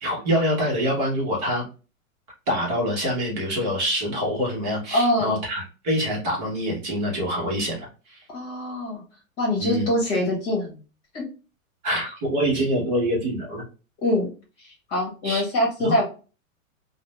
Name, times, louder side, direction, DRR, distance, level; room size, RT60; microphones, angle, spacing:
voice 1, 0.0-1.6 2.5-8.2 9.6-9.9 11.8-13.6 15.2-15.4 15.8-15.9, equal, 30° right, -2 dB, 0.9 m, -25 dB
voice 2, 4.9-5.4 8.3-9.0 9.4-10.8 11.1-11.2 14.0-14.3 14.6-16.0, left 1 dB, 30° left, -2 dB, 1.0 m, -24 dB
2.5 x 2.1 x 3.0 m, 0.34 s
hypercardioid pair, 160°, 42 cm